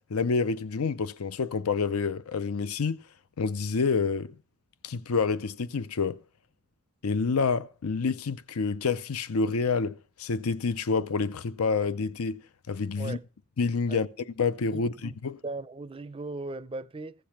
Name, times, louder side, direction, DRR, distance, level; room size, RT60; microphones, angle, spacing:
voice 1, 0.1-3.0 3.4-4.3 4.8-6.2 7.0-12.4 12.7-13.2 13.6-14.1 14.4-15.4, left 4 dB, 85° left, 0.6 m, -28 dB
voice 2, 14.7-15.2 15.4-17.1, right 2 dB, 25° right, 0.5 m, -38 dB
15.5 x 6.9 x 5.8 m
head